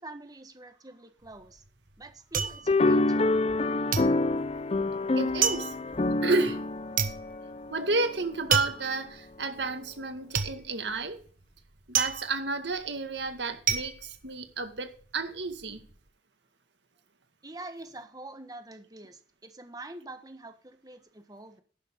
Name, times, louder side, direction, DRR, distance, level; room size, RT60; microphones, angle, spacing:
voice 1, 0.0-1.6 2.0-3.4 17.4-21.6, right 2 dB, 20° right, 1.4 m, -45 dB
sound 1, 1.2-3.6 3.9-15.0 15.4-16.0, right 7 dB, 50° right, 1.3 m, -32 dB
sound 2, 2.7-8.2, left 2 dB, 35° left, 0.6 m, -27 dB
voice 2, 5.2-5.7 6.2-6.6 7.7-11.2 11.9-15.9, right 3 dB, 75° right, 1.9 m, -31 dB
11.5 x 10.0 x 3.7 m
head